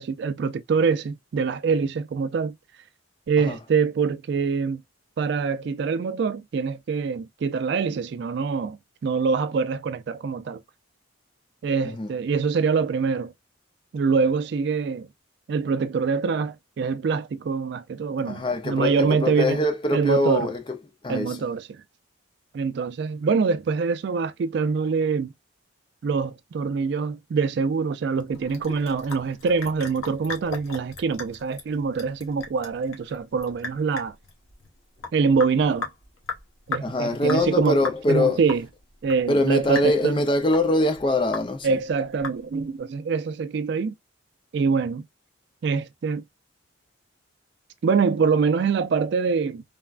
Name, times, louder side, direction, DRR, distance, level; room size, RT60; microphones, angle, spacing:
voice 1, 0.0-2.6 3.3-4.8 5.2-8.8 9.0-10.6 11.6-13.3 13.9-15.1 15.5-19.6 19.9-20.5 21.1-21.7 22.5-25.3 26.0-34.1 35.1-35.9 36.7-37.8 38.1-38.6 39.0-40.2 41.6-43.9 44.5-45.1 45.6-46.2 47.8-49.6, right 5 dB, 55° right, 0.3 m, -24 dB
voice 2, 18.3-20.6 21.0-21.4 36.8-38.4 39.3-41.8, left 2 dB, 25° left, 0.5 m, -23 dB
Sink (filling or washing) / Drip, 28.3-42.8, left 4 dB, 85° left, 1.0 m, -38 dB
3.4 x 2.1 x 2.3 m
head